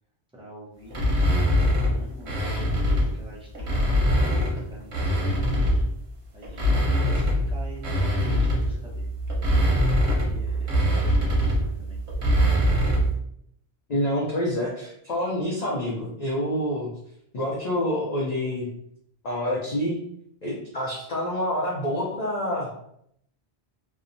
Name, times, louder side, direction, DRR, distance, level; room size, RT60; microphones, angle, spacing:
voice 1, 0.3-1.0 1.4-5.6 6.3-9.0 10.1-12.0, equal, 5° right, -5 dB, 0.5 m, -45 dB
sound 1, 0.9-3.1 3.5-6.0 6.4-13.2, equal, 85° right, 1.1 m, -23 dB
voice 2, 13.9-16.9 17.3-18.7 19.2-20.0 20.4-22.7, left 1 dB, 50° left, -4 dB, 0.6 m, -27 dB
2.8 x 2.1 x 2.5 m, 0.71 s
omnidirectional pair, 1.1 m